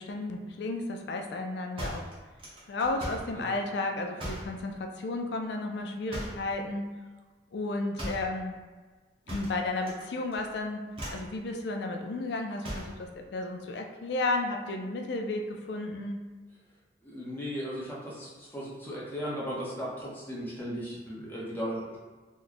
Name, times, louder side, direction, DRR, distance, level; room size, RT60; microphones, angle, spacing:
voice 1, 0.0-2.1 2.7-6.9 7.5-8.6 9.3-10.8 11.1-16.2, left 2 dB, 70° left, 3 dB, 0.4 m, -33 dB
sound 1, 1.8-3.3 4.2-4.6 6.1-6.5 8.0-8.3 9.3-10.0 10.3-10.6 10.9-11.3 12.6-13.0, equal, 30° right, 0.8 m, -38 dB
voice 2, 17.0-22.0, equal, 10° left, -6 dB, 0.7 m, -36 dB
3.0 x 2.2 x 3.9 m, 1.3 s
head